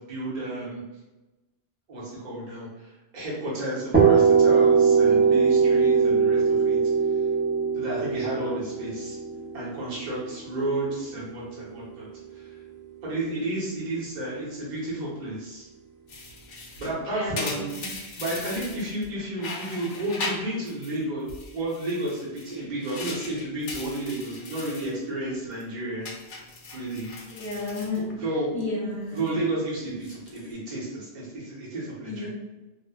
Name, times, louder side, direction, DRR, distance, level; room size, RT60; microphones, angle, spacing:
voice 1, 0.1-0.8 1.9-6.8 7.7-9.2 9.5-12.1 12.3-12.5 13.0-15.7 16.8-17.7 18.2-21.3 21.5-26.1 26.7-27.1 28.1-28.5 29.1-32.3, right 1 dB, 45° right, -7 dB, 0.9 m, -32 dB
sound 1, 3.9-11.7, right 5 dB, 15° right, 0.4 m, -21 dB
sound 2, 16.1-19.1 19.4-21.0 21.3-24.9 25.3-25.6 26.0-28.6 28.9-29.3 29.9-30.5, left 3 dB, 60° left, 0.6 m, -39 dB
voice 2, 17.1-17.4 17.7-17.8 27.3-28.0 28.5-29.3 32.1-32.3, left 3 dB, 20° left, -10 dB, 1.3 m, -32 dB
3.1 x 2.1 x 2.3 m, 1.1 s
omnidirectional pair, 1.1 m